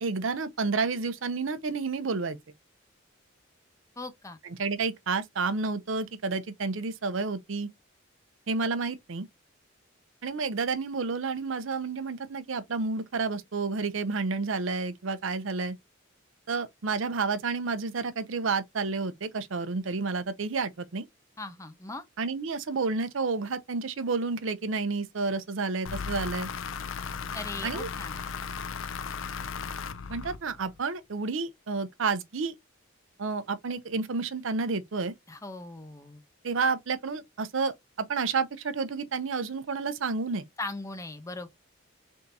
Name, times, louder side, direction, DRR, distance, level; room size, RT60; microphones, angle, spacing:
voice 1, 0.0-2.4 4.6-7.7 8.5-9.3 10.2-15.8 16.5-21.1 22.2-26.5 27.6-27.9 30.1-32.5 33.2-35.1 36.4-40.4, right 4 dB, 75° right, 0.6 m, -30 dB
voice 2, 4.0-4.4 21.4-22.0 27.3-28.2 35.3-36.2 40.6-41.5, left 2 dB, 15° left, 0.6 m, -39 dB
sound 1, 25.8-30.8, left 6 dB, 80° left, 0.5 m, -36 dB
3.5 x 2.8 x 3.9 m
head